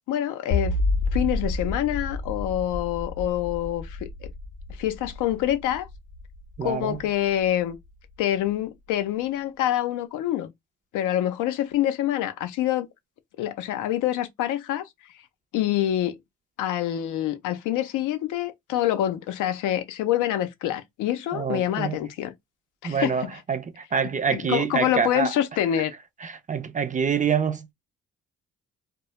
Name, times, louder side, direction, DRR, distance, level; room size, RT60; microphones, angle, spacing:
voice 1, 0.1-0.7 1.1-4.3 4.8-5.9 6.6-7.8 8.2-10.5 10.9-12.9 13.4-14.8 15.5-16.2 16.6-22.3 22.8-23.3 24.3-25.9, left 12 dB, 90° left, 0.5 m, -26 dB
sound 1, 0.5-7.7, left 2 dB, 45° left, 0.7 m, -30 dB
voice 2, 6.6-7.0 21.3-22.0 22.8-25.3 26.2-27.7, right 6 dB, 25° right, 0.4 m, -26 dB
2.1 x 2.0 x 2.9 m
cardioid pair, 90°, 30 cm